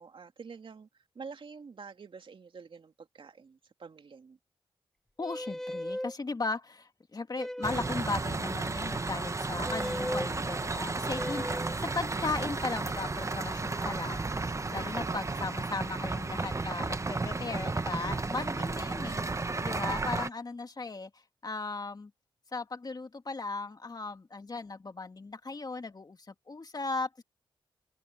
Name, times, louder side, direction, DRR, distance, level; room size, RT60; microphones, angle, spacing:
voice 1, 0.0-4.4 15.0-15.5, right 5 dB, 60° right, 2.6 m, -47 dB
voice 2, 5.2-14.3 14.7-21.1 21.4-22.1 22.5-27.2, left 3 dB, 40° left, 2.4 m, -37 dB
sound 1, 5.2-6.1 7.4-8.0 9.7-10.3 11.1-11.8, left 1 dB, 5° left, 0.4 m, -36 dB
sound 2, 7.6-20.3, right 3 dB, 30° right, 1.0 m, -33 dB
open air
cardioid pair, 50°, 10 cm